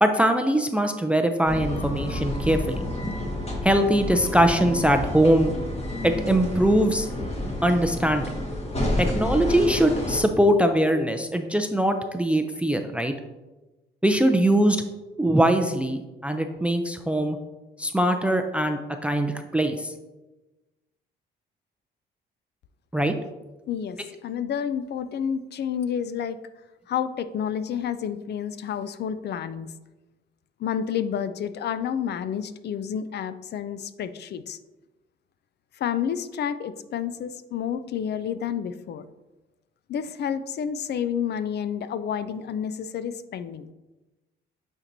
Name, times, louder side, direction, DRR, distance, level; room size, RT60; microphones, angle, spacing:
voice 1, 0.0-3.1 3.6-5.5 6.0-7.1 7.6-8.3 9.0-13.1 14.0-14.8 15.2-17.4 17.8-19.9 22.9-23.1, right 1 dB, 5° right, 6 dB, 0.4 m, -22 dB
sound 1, 1.4-10.2, left 1 dB, 30° left, 1.6 m, -30 dB
voice 2, 23.7-26.4 26.9-29.7 30.6-34.6 35.8-39.0 39.9-43.7, left 8 dB, 55° left, 13 dB, 0.4 m, -30 dB
8.6 x 4.5 x 2.7 m, 1.1 s
cardioid pair, 90°, 20 cm